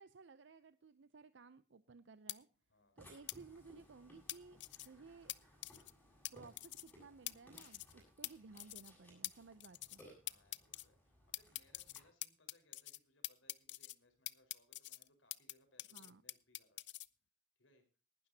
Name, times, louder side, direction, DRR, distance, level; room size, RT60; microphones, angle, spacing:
voice 1, 0.0-2.5 3.0-4.6 4.8-5.3 6.3-10.0 15.9-16.2, right 4 dB, 70° right, 13 dB, 0.6 m, -58 dB
sound 1, 2.3-2.4 3.3-3.4 4.3-4.9 5.3-5.4 5.6-5.9 6.2-6.3 6.6-6.9 7.3-7.4 7.6-7.9 8.2-8.3 8.6-8.9 9.2-9.3 9.6-10.0 10.3-10.8 11.3-13.0 13.2-13.9 14.3-15.5 15.8-17.1, left 17 dB, 60° left, 0.5 m, -45 dB
voice 2, 2.7-3.0 4.9-5.2 10.2-16.9 17.6-17.8, left 1 dB, 85° left, 6 dB, 4.6 m, -72 dB
Burping eructation, 3.0-12.0, equal, 10° left, 7.4 m, -63 dB
19.5 x 12.0 x 2.8 m, 0.33 s
head